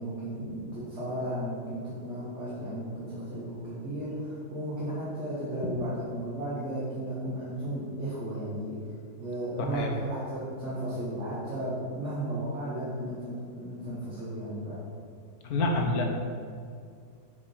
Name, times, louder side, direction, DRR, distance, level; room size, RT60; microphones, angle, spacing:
voice 1, 0.0-8.8 9.2-14.8, right 1 dB, 40° right, -9 dB, 1.8 m, -34 dB
voice 2, 9.6-9.9 15.4-16.1, left 2 dB, 60° left, 2 dB, 1.4 m, -27 dB
6.9 x 5.1 x 5.6 m, 2.2 s
omnidirectional pair, 2.0 m